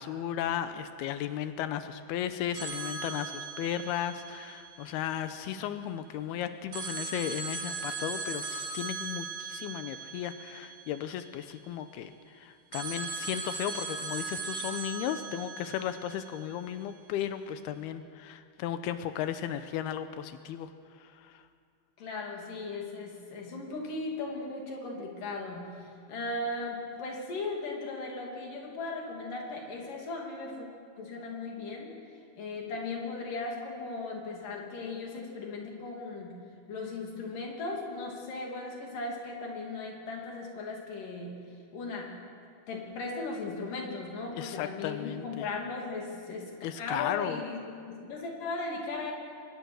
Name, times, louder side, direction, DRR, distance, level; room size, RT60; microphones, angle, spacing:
voice 1, 0.0-20.7 21.0-21.4 44.3-45.5 46.6-47.4, left 10 dB, 85° left, 10 dB, 2.7 m, -35 dB
sound 1, 2.5-5.5 6.7-11.7 12.7-16.9, right 4 dB, 50° right, 4.2 m, -39 dB
voice 2, 22.0-30.7 31.0-32.0 32.4-36.3 36.7-41.4 41.7-42.2 42.7-46.5 46.8-49.1, left 3 dB, 60° left, 0 dB, 4.4 m, -37 dB
24.0 x 20.5 x 6.4 m, 2.3 s
omnidirectional pair, 4.5 m